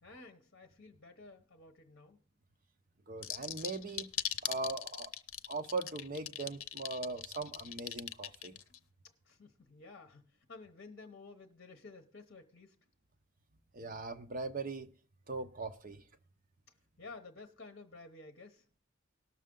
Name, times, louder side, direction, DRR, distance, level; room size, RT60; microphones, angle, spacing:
voice 1, 0.0-2.2 9.2-12.7 17.0-18.6, left 3 dB, 50° left, 1.0 m, -53 dB
voice 2, 3.1-4.1 4.4-5.1 5.5-8.5 13.7-14.9 15.3-16.0, right 3 dB, 40° right, 0.7 m, -40 dB
sound 1, 3.2-8.8, left 10 dB, 85° left, 0.6 m, -39 dB
18.5 x 6.5 x 3.7 m
head